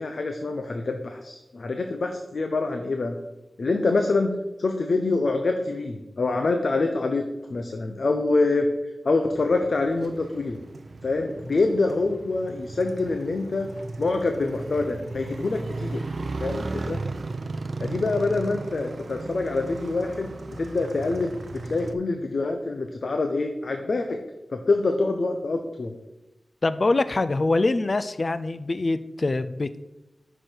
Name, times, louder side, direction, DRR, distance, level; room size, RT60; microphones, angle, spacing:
voice 1, 0.0-3.2 3.6-4.3 4.6-7.2 7.5-8.7 9.0-10.6 11.0-13.7 14.0-16.0 16.4-17.0 17.8-24.2 24.5-25.9, left 3 dB, 60° left, 5 dB, 0.8 m, -25 dB
Motorcycle, 9.4-21.9, right 3 dB, 55° right, 0.6 m, -36 dB
voice 2, 26.6-29.8, left 2 dB, 40° left, 13 dB, 0.4 m, -24 dB
10.0 x 6.2 x 4.6 m, 0.98 s
wide cardioid pair, 110°, 0 cm